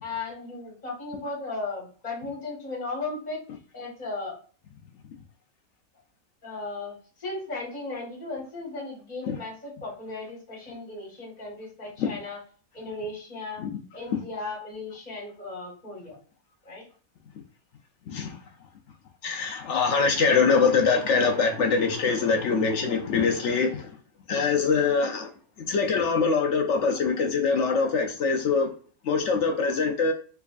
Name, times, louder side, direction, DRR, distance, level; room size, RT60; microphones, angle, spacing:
voice 1, 0.0-3.4 3.7-4.4 6.4-12.4 12.7-13.6 13.9-16.2 16.6-16.8, left 3 dB, 25° left, -3 dB, 1.5 m, -36 dB
voice 2, 18.1-18.4 19.2-23.9 24.3-25.3 25.7-28.7 29.0-30.1, left 5 dB, 70° left, 3 dB, 0.7 m, -23 dB
3.5 x 3.1 x 2.4 m, 0.40 s
omnidirectional pair, 1.7 m